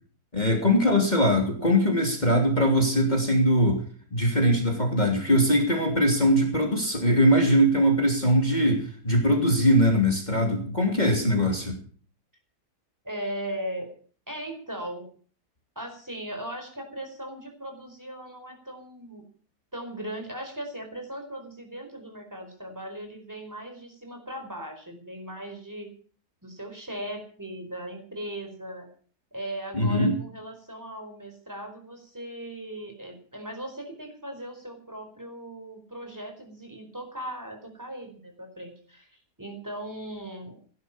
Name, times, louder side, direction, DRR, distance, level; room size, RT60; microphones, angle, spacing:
voice 1, 0.3-3.8 4.1-11.8 29.7-30.2, equal, 25° left, 2 dB, 3.2 m, -21 dB
voice 2, 13.0-13.9 14.3-15.0 15.7-19.2 19.7-25.9 26.4-28.9 29.3-39.1 39.4-40.6, right 1 dB, 10° right, 4 dB, 4.8 m, -38 dB
16.5 x 11.5 x 7.2 m, 0.43 s
omnidirectional pair, 1.7 m